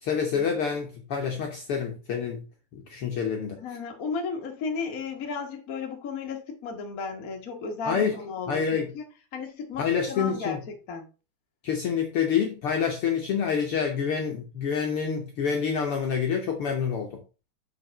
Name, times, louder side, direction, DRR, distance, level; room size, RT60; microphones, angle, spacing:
voice 1, 0.0-2.4 2.7-3.6 7.9-8.2 8.5-8.9 9.8-10.6 11.6-17.2, left 6 dB, 60° left, 1.6 m, -27 dB
voice 2, 3.6-9.0 9.3-10.6 10.9-11.1, left 5 dB, 45° left, 1.2 m, -34 dB
6.4 x 5.3 x 4.5 m
omnidirectional pair, 3.5 m